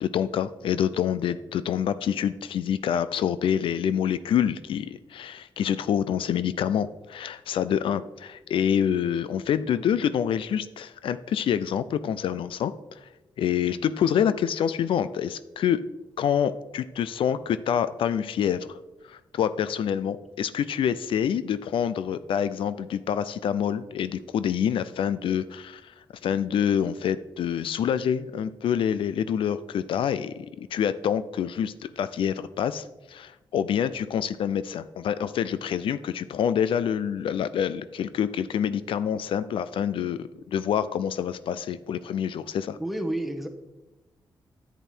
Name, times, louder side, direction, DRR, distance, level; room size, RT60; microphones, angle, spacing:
voice 1, 0.0-13.1 13.4-15.8 16.2-18.8 19.1-25.9 26.2-42.8, left 8 dB, 80° left, 14 dB, 0.4 m, -27 dB
voice 2, 42.8-43.5, right 1 dB, ahead, 5 dB, 1.2 m, -29 dB
10.0 x 8.2 x 4.5 m, 1.0 s
cardioid pair, 110°, 9 cm